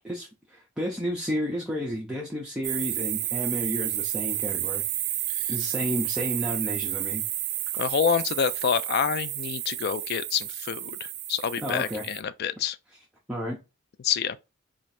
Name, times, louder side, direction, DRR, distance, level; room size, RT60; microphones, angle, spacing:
voice 1, 0.0-4.8 5.5-7.2 11.6-12.0 13.3-13.6, equal, 5° right, 0.5 m, -31 dB
sound 1, 2.6-12.2, right 14 dB, 55° right, 0.4 m, -31 dB
voice 2, 7.8-11.0 11.3-12.8 14.0-14.4, left 7 dB, 50° left, 0.3 m, -27 dB
3.1 x 2.4 x 4.1 m
head